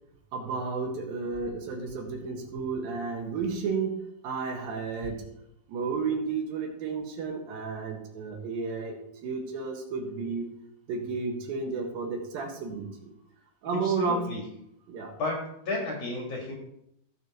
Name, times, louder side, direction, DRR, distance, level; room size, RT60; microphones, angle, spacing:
voice 1, 0.3-5.2 5.7-9.0 9.2-10.5 10.9-13.1 13.6-14.3 14.9-15.1, right 4 dB, 70° right, 2 dB, 3.1 m, -32 dB
voice 2, 13.8-14.4 15.2-16.5, left 2 dB, 50° left, -2 dB, 2.5 m, -33 dB
16.0 x 6.8 x 3.0 m, 0.76 s
omnidirectional pair, 4.4 m